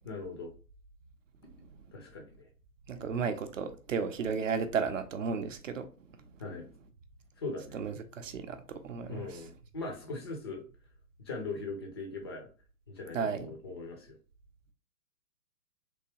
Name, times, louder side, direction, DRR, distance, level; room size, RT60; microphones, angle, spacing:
voice 1, 0.0-0.5 1.9-2.5 6.4-6.7 7.4-7.8 9.1-10.6 11.3-12.5 12.9-14.2, left 3 dB, 20° left, 0.4 m, -40 dB
voice 2, 2.9-5.9 7.7-9.4 13.1-13.5, right 6 dB, 55° right, 0.7 m, -34 dB
3.4 x 2.8 x 2.9 m
figure-of-eight pair, 115°, 46 cm